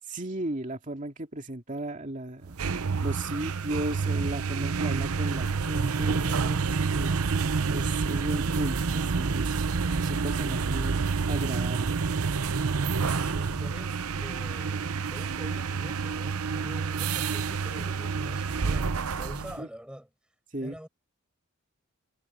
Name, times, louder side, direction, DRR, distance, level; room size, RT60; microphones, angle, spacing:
voice 1, 0.1-9.7 10.0-11.0 11.3-12.0 19.6-19.7 20.5-20.8, right 1 dB, 35° right, 2.5 m, -35 dB
sound 1, 2.4-19.6, right 5 dB, 90° right, 0.7 m, -28 dB
voice 2, 13.0-20.1 20.6-20.9, equal, 5° right, 6.7 m, -44 dB
head